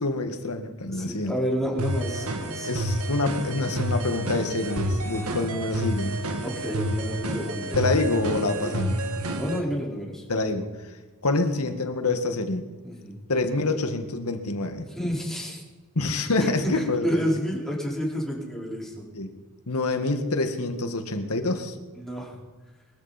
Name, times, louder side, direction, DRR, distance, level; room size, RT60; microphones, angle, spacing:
voice 1, 0.0-1.3 2.7-6.2 7.7-9.0 10.3-10.9 11.2-12.7 13.3-14.9 16.0-17.2 19.1-19.3 19.7-21.8, left 2 dB, 90° left, 7 dB, 1.7 m, -26 dB
voice 2, 0.9-2.7 6.4-7.9 8.6-8.7 9.3-10.3 12.8-13.2 14.9-15.6 16.4-19.1 21.9-22.4, equal, ahead, -4 dB, 4.6 m, -30 dB
sound 1, 1.8-9.6, right 1 dB, 80° right, 1.8 m, -29 dB
23.0 x 14.0 x 4.3 m, 1.3 s
head